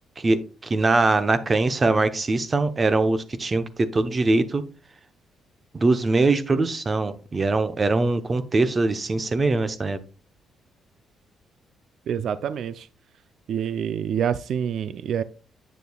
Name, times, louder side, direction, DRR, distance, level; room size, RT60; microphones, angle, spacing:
voice 1, 0.2-4.6 5.7-10.0, right 3 dB, 30° right, 0.8 m, -22 dB
voice 2, 12.1-12.9 13.5-15.2, right 8 dB, 70° right, 0.3 m, -27 dB
8.2 x 6.7 x 2.3 m
cardioid pair, 90°, 0 cm